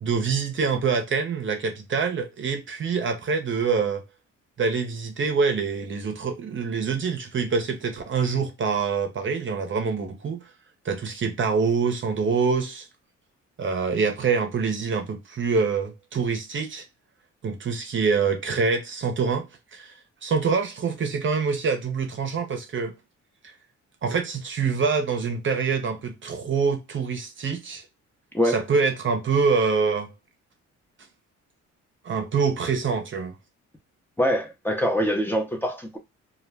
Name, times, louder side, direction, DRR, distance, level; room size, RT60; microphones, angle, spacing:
voice 1, 0.0-4.0 4.6-10.4 10.8-12.9 13.6-16.8 17.4-19.4 19.7-19.9 20.2-22.9 24.0-27.8 28.4-30.1 32.0-33.3, right 5 dB, 40° right, 0.7 m, -25 dB
voice 2, 34.2-36.0, equal, 5° left, 0.6 m, -24 dB
2.3 x 2.0 x 3.3 m
cardioid pair, 90°, 30 cm